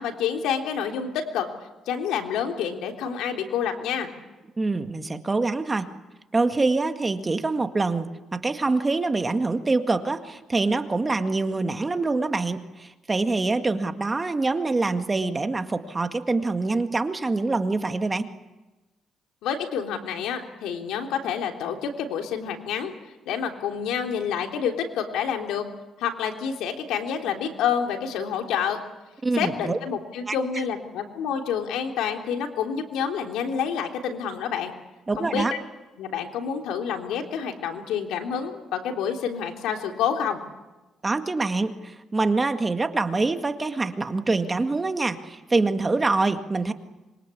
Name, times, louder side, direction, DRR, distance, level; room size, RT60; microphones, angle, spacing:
voice 1, 0.0-1.5 1.9-4.1 19.4-22.9 23.3-25.6 26.0-28.8 29.4-34.7 35.2-35.4 36.0-40.4, left 7 dB, 90° left, 4 dB, 3.4 m, -28 dB
voice 2, 4.6-5.9 6.3-18.3 29.2-29.8 30.3-30.4 35.1-35.5 41.0-46.7, right 3 dB, 25° right, 7 dB, 1.9 m, -25 dB
26.0 x 23.0 x 8.6 m, 1.1 s
cardioid pair, 90°, 0 cm